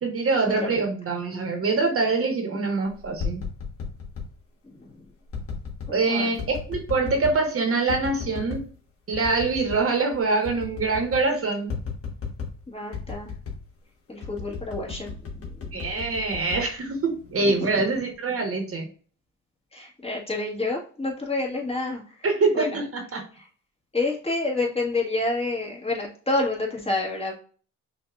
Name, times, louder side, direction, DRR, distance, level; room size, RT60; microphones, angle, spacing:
voice 1, 0.0-3.4 5.9-8.6 9.1-11.7 15.7-18.9 22.2-23.2, right 3 dB, 50° right, 3 dB, 1.5 m, -24 dB
sound 1, 3.0-4.3 5.3-5.9 6.4-7.4 7.9-8.7 9.1-9.9 10.1-10.2 10.5-11.3 11.7-12.6 12.9-13.7 14.2-17.3 17.7-18.1, left 5 dB, 50° left, 1.5 m, -34 dB
voice 2, 4.6-5.0 5.9-6.3 12.7-13.3 14.1-15.8 17.4-17.8 19.7-22.2 22.5-22.8 23.4-23.5 23.9-27.4, left 2 dB, 20° left, -4 dB, 1.9 m, -29 dB
5.8 x 2.8 x 2.5 m, 0.41 s
cardioid pair, 90°, 30 cm